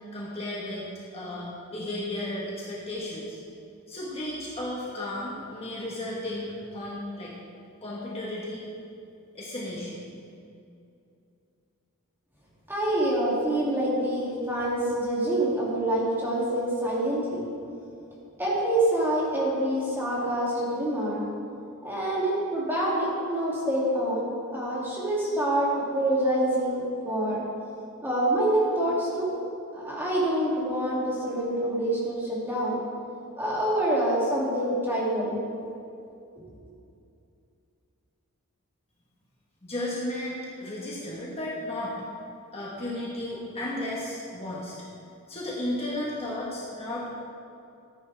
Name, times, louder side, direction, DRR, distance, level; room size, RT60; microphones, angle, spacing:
voice 1, 0.1-3.4 3.9-7.3 7.8-8.7 9.3-10.0 39.6-42.0 42.5-44.7 45.3-47.2, left 1 dB, 25° left, -6 dB, 1.5 m, -34 dB
voice 2, 12.7-17.4 18.4-21.2 21.8-27.4 28.0-29.3 29.7-32.8 33.4-35.4, right 1 dB, 10° right, -7 dB, 2.7 m, -26 dB
14.0 x 9.8 x 3.5 m, 2.6 s
head